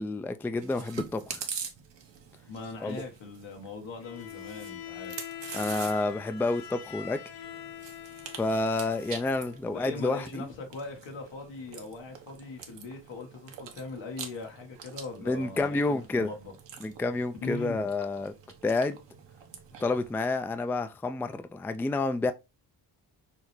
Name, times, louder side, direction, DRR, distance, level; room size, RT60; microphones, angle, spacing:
voice 1, 0.0-1.4 2.8-3.0 5.5-7.2 8.4-10.5 15.2-16.3 16.8-18.3 18.6-19.0 19.8-22.3, left 3 dB, 5° left, 0.3 m, -29 dB
Chewing mastication, 0.6-20.1, right 7 dB, 75° right, 1.0 m, -45 dB
voice 2, 2.5-5.2 9.7-16.5 17.4-17.9, left 3 dB, 80° left, 1.4 m, -40 dB
Bowed string instrument, 4.0-9.6, left 11 dB, 65° left, 0.9 m, -44 dB
5.8 x 2.1 x 3.1 m
cardioid pair, 60°, 44 cm